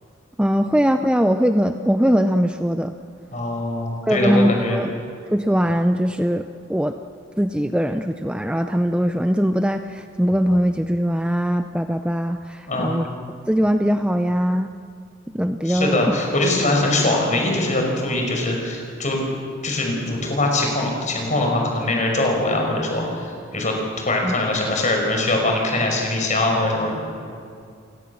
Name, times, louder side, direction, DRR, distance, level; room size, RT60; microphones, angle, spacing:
voice 1, 0.4-2.9 4.1-4.9 5.3-6.9 7.4-13.1 13.5-14.7 15.3-16.0 24.2-24.3, equal, 5° right, 7 dB, 0.5 m, -21 dB
voice 2, 3.3-4.8 12.7-13.0 15.6-19.2 19.6-27.0, left 2 dB, 40° left, 1 dB, 5.7 m, -22 dB
30.0 x 17.0 x 7.2 m, 2.4 s
head